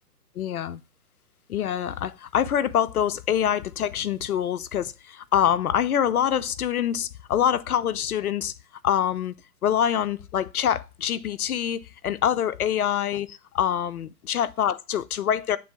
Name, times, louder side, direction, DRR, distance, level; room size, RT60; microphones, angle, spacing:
voice 1, 0.4-0.8 1.5-8.5 8.8-9.3 9.6-15.6, left 9 dB, 65° left, 0.6 m, -25 dB
8.5 x 3.8 x 4.3 m
hypercardioid pair, 145°, 49 cm